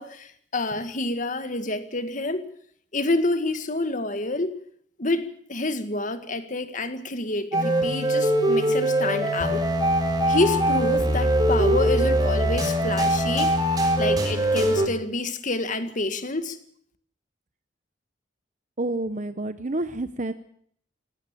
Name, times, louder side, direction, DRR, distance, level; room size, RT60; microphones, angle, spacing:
voice 1, 0.0-2.5 2.9-4.6 5.0-9.7 10.3-13.6 14.0-16.6, left 2 dB, 45° left, 1.9 m, -28 dB
sound 1, 7.5-14.9, right 1 dB, 20° right, 3.9 m, -22 dB
voice 2, 18.8-20.3, right 2 dB, 40° right, 0.9 m, -29 dB
18.0 x 16.5 x 9.0 m
head